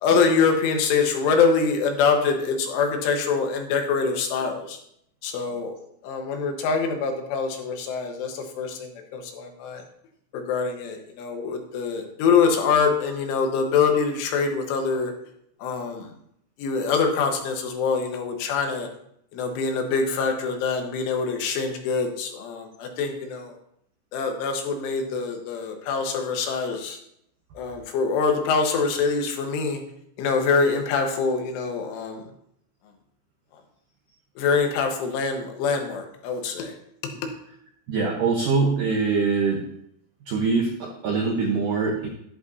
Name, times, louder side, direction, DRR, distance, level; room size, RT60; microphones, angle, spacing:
voice 1, 0.0-4.8 5.2-5.8 6.0-9.8 10.3-15.1 15.6-16.1 16.6-18.9 19.3-23.6 24.1-27.0 27.6-29.8 30.2-32.2 34.4-36.7, left 5 dB, 85° left, 4 dB, 3.7 m, -24 dB
voice 2, 37.9-39.7 40.3-42.1, right 4 dB, 85° right, 0 dB, 1.9 m, -23 dB
11.0 x 11.0 x 2.7 m, 0.72 s
omnidirectional pair, 5.5 m